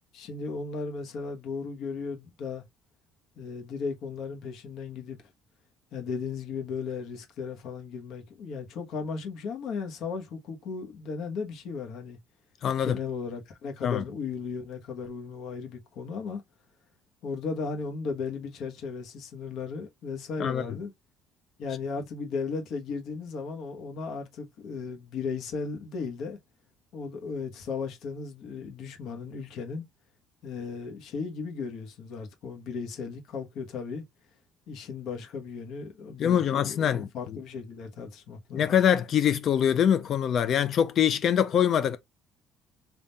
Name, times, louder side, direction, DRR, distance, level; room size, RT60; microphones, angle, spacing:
voice 1, 0.1-2.6 3.4-5.2 5.9-12.2 12.8-16.4 17.2-20.9 21.6-26.4 26.9-29.8 30.4-34.0 34.7-38.8, left 5 dB, 55° left, 1.3 m, -36 dB
voice 2, 12.6-13.0 13.8-14.0 20.4-20.6 36.2-37.1 38.5-42.0, left 9 dB, 40° left, 0.4 m, -24 dB
3.7 x 2.7 x 4.1 m
cardioid pair, 170°, 0 cm